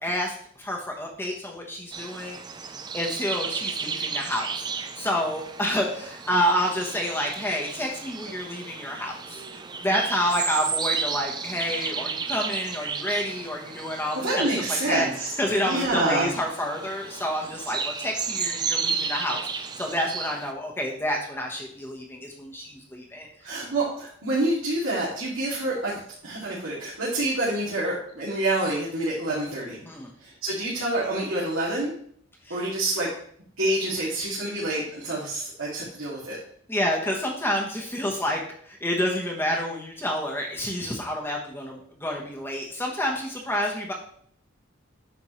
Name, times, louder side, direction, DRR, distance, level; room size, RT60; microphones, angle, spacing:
voice 1, 0.0-2.4 2.9-15.1 15.4-23.6 29.9-30.1 32.4-32.6 36.7-43.9, equal, 10° left, -1 dB, 1.0 m, -29 dB
sound 1, 1.9-20.5, right 5 dB, 20° right, 0.4 m, -33 dB
voice 2, 14.1-15.3 15.6-16.3 23.4-29.9 30.2-31.9 32.5-33.1 33.6-36.4, right 2 dB, 85° right, -7 dB, 2.4 m, -27 dB
9.8 x 6.3 x 3.1 m, 0.63 s
head